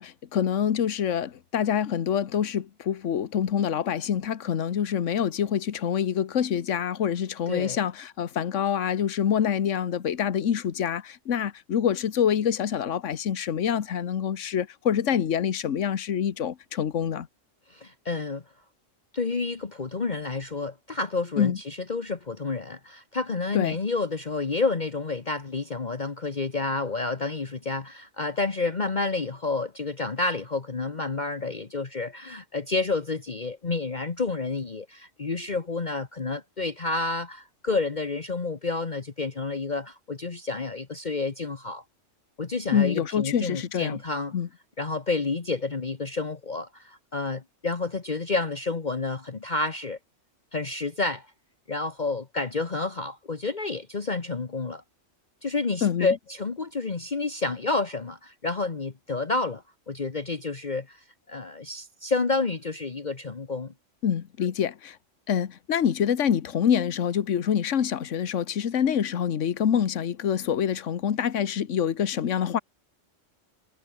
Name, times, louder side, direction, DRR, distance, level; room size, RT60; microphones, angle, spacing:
voice 1, 0.0-17.3 21.4-21.6 23.5-23.8 42.7-44.0 44.3-44.5 55.8-56.1 64.0-65.0 65.3-72.6, left 8 dB, 75° left, 1.4 m, -26 dB
voice 2, 7.5-7.8 17.7-18.4 19.1-41.8 42.4-44.3 44.8-50.0 50.5-51.3 51.7-54.8 55.4-63.7, left 3 dB, 35° left, 1.4 m, -30 dB
omnidirectional pair, 1.3 m